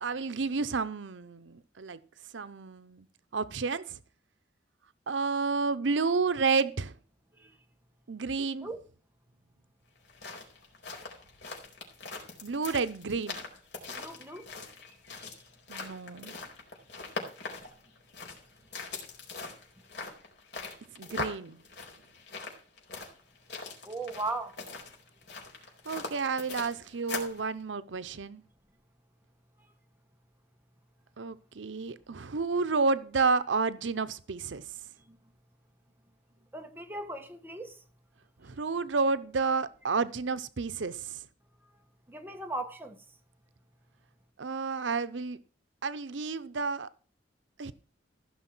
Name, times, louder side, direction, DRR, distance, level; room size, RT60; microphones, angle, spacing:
voice 1, 0.0-2.0 2.3-3.1 3.3-4.0 5.1-6.9 8.1-8.7 12.4-13.4 15.7-16.3 21.0-21.6 25.9-28.4 31.2-34.6 38.4-41.2 44.4-45.4 45.8-46.9 47.6-47.7, right 4 dB, 90° right, 0.7 m, -30 dB
sound 1, 10.0-27.4, left 3 dB, 70° left, 4.4 m, -42 dB
voice 2, 13.9-14.5 15.1-15.3 23.8-24.6 35.1-35.2 36.5-37.8 42.1-43.0, right 2 dB, 10° right, 1.6 m, -38 dB
15.0 x 6.4 x 6.1 m
head